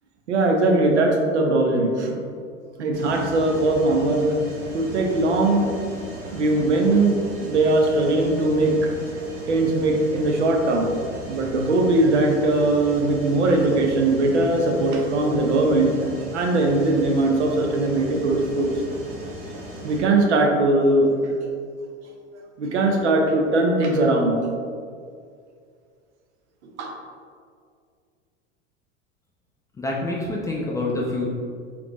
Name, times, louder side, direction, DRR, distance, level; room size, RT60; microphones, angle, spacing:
voice 1, 0.3-2.2 2.8-4.4 4.7-5.8 6.3-8.7 9.5-10.9 11.3-15.9 16.3-18.7 19.8-21.3 22.6-24.4 26.8-26.9, right 2 dB, 65° right, 1 dB, 0.8 m, -20 dB
Mechanisms, 2.9-20.0, right 1 dB, 45° right, 1.5 m, -38 dB
voice 2, 29.8-31.3, left 2 dB, 10° left, -4 dB, 0.4 m, -26 dB
5.0 x 3.4 x 3.0 m, 2.2 s
figure-of-eight pair, 85°, 37 cm